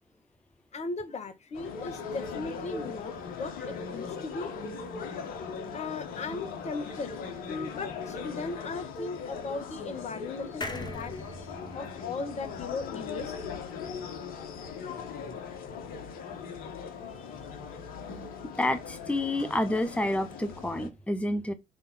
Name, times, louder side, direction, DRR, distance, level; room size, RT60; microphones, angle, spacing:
voice 1, 0.7-4.5 5.7-7.2 7.5-11.2 11.7-13.3 17.1-17.4, left 3 dB, 40° left, 1.8 m, -37 dB
sound 1, 1.5-20.9, left 5 dB, 60° left, 1.6 m, -39 dB
sound 2, 10.6-14.1 14.5-14.6 14.8-14.9, left 1 dB, 25° left, 1.9 m, -42 dB
voice 2, 18.6-21.5, left 1 dB, 5° left, 0.9 m, -29 dB
7.6 x 3.7 x 5.8 m
figure-of-eight pair, 50°, 17 cm